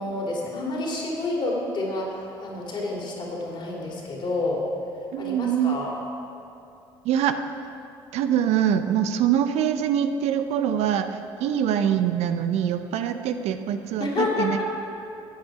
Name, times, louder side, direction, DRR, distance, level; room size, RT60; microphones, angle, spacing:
voice 1, 0.0-4.6 5.2-6.0 14.0-14.6, left 2 dB, 40° left, -2 dB, 2.9 m, -29 dB
voice 2, 5.1-5.8 7.0-7.3 8.1-14.6, right 9 dB, 55° right, 9 dB, 0.6 m, -24 dB
12.0 x 8.6 x 4.8 m, 2.6 s
hypercardioid pair, 60°, 13 cm